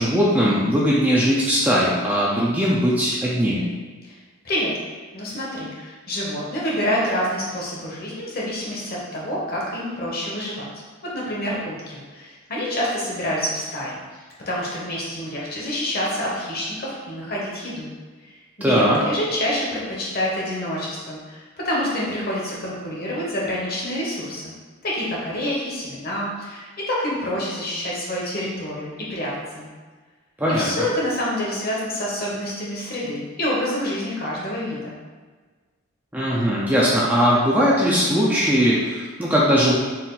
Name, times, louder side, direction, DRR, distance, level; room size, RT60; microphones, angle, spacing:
voice 1, 0.0-3.7 18.6-19.0 30.4-30.7 36.1-39.8, equal, 10° right, -6 dB, 0.4 m, -19 dB
voice 2, 5.1-10.7 11.0-14.0 14.5-17.9 18.2-24.5 24.8-29.7 30.6-35.0, left 1 dB, 45° left, -4 dB, 1.0 m, -27 dB
4.2 x 2.5 x 3.9 m, 1.4 s
head